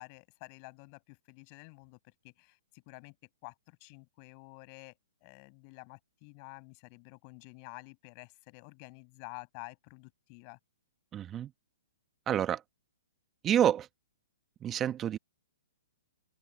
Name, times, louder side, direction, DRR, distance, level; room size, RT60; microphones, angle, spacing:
voice 1, 0.0-3.1 3.4-10.6, left 37 dB, 40° left, 6.5 m, -50 dB
voice 2, 11.1-11.5 12.3-12.6 13.4-13.9 14.6-15.2, right 10 dB, 20° right, 1.2 m, -28 dB
open air
hypercardioid pair, 125°, 0 cm